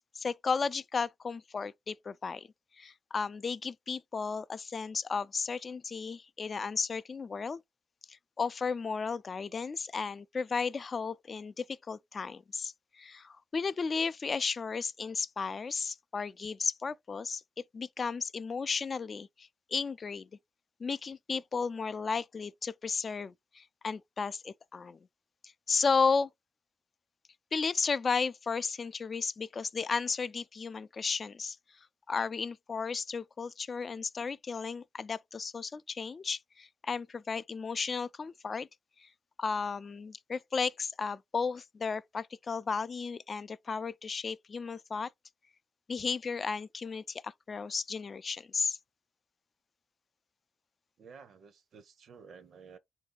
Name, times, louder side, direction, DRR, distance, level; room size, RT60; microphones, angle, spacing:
voice 1, 0.1-2.5 2.8-7.6 8.1-17.4 17.7-20.3 20.8-25.0 25.7-26.3 27.5-31.6 32.1-38.7 39.0-39.1 39.4-45.1 45.9-48.8, left 5 dB, 45° left, 0.3 m, -34 dB
voice 2, 51.0-52.8, right 6 dB, 70° right, 0.6 m, -53 dB
4.1 x 2.7 x 3.7 m
cardioid pair, 90°, 0 cm